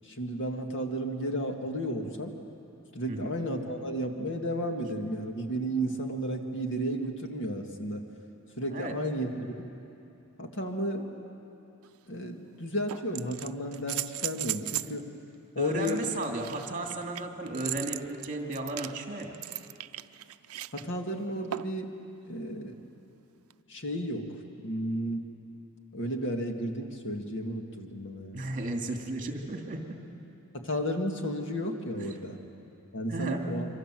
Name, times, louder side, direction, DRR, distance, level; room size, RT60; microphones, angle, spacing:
voice 1, 0.1-2.3 2.9-8.0 8.6-9.3 9.6-9.7 10.4-11.1 12.1-15.1 15.6-16.0 20.7-21.9 22.3-22.7 23.7-24.3 24.6-25.3 25.9-28.4 30.5-32.4 32.9-33.7, equal, 55° left, 3 dB, 2.1 m, -33 dB
sound 1, 11.8-11.9 12.9-15.0 15.8-20.8 21.5-21.9 23.5-23.6, right 14 dB, 75° right, 0.5 m, -37 dB
voice 2, 15.6-19.4 28.3-30.0 33.1-33.5, right 2 dB, 40° right, 2 dB, 2.6 m, -34 dB
26.5 x 24.5 x 7.7 m, 2.8 s
head